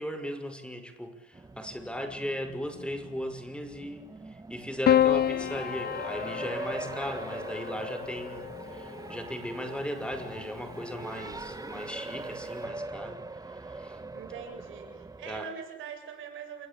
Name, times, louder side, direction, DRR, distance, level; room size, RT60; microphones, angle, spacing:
voice 1, 0.0-13.2 13.5-14.0 15.3-15.5, equal, 5° left, 8 dB, 5.7 m, -37 dB
Race car auto racing, 1.3-15.4, right 2 dB, 20° right, 1.7 m, -42 dB
Piano, 4.9-9.3 10.5-11.2, left 10 dB, 55° left, 0.8 m, -29 dB
voice 2, 14.1-16.7, right 8 dB, 85° right, 5 dB, 7.7 m, -43 dB
28.0 x 21.5 x 8.5 m, 1.1 s
cardioid pair, 90°, 20 cm